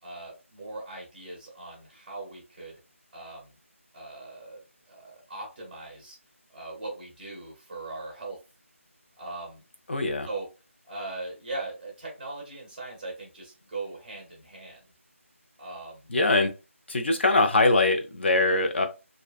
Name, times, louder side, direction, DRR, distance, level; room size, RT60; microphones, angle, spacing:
voice 1, 0.0-2.8 3.1-3.6 3.9-4.6 4.9-6.2 6.5-8.4 9.2-9.6 10.2-10.5 10.8-14.8 15.6-16.1, right 2 dB, 10° right, -3 dB, 0.6 m, -39 dB
voice 2, 9.9-10.3 16.1-16.5 16.9-18.9, left 2 dB, 50° left, 6 dB, 0.6 m, -22 dB
2.6 x 2.2 x 2.3 m, 0.30 s
figure-of-eight pair, 175°, 8 cm